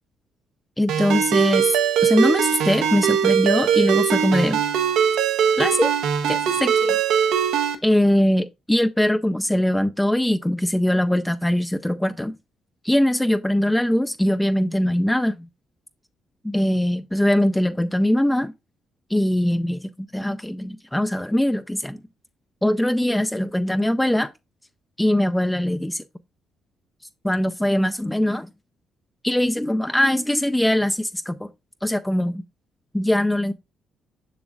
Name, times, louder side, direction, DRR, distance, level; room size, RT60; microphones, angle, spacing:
voice 1, 0.8-4.6 5.6-5.9 6.3-7.0 7.8-12.3 12.8-15.5 16.4-18.5 19.1-22.0 22.6-24.3 25.0-26.0 27.2-28.5 29.2-31.5 31.8-32.4 32.9-33.5, left 1 dB, 5° left, 0.3 m, -21 dB
Ringtone, 0.9-7.8, right 8 dB, 90° right, 0.8 m, -21 dB
7.0 x 6.1 x 2.3 m
cardioid pair, 90°, 0 cm